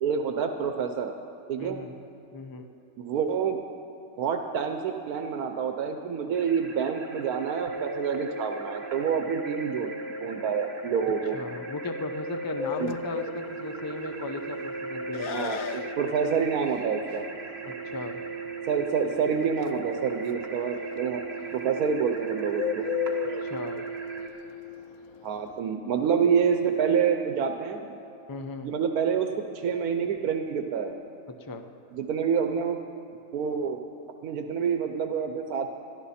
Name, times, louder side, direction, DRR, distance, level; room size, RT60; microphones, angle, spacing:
voice 1, 0.0-1.1 1.5-1.8 3.0-3.6 4.2-9.9 10.2-11.4 12.8-12.9 15.3-17.2 18.7-21.2 21.5-22.9 23.3-23.4 25.2-28.0 28.6-29.3 29.5-30.9 31.9-32.8 33.3-33.8 34.2-35.7, right 6 dB, 85° right, 5 dB, 1.3 m, -27 dB
voice 2, 1.6-1.9 2.3-2.7 11.3-15.6 17.7-18.2 23.4-23.8 28.3-28.7 31.3-31.7, left 3 dB, 25° left, 7 dB, 0.5 m, -37 dB
sound 1, 6.3-24.3, right 3 dB, 45° right, 1.7 m, -37 dB
Bird, 12.6-25.6, left 10 dB, 75° left, 1.0 m, -37 dB
22.0 x 13.5 x 4.3 m, 2.8 s
omnidirectional pair, 1.5 m